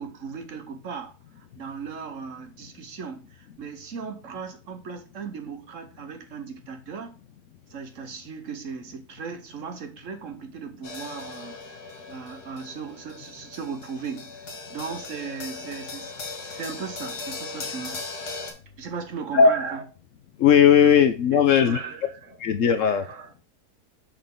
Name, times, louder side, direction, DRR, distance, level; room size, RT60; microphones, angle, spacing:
voice 1, 0.0-7.2 7.7-11.6 12.1-14.4 14.7-18.0 18.8-19.8 20.7-21.0 21.3-23.3, right 5 dB, 55° right, 1.2 m, -37 dB
sound 1, 10.8-18.5, left 4 dB, 80° left, 2.0 m, -38 dB
voice 2, 20.4-21.8 22.4-23.1, left 7 dB, 65° left, 0.9 m, -17 dB
6.5 x 5.8 x 3.7 m
omnidirectional pair, 1.7 m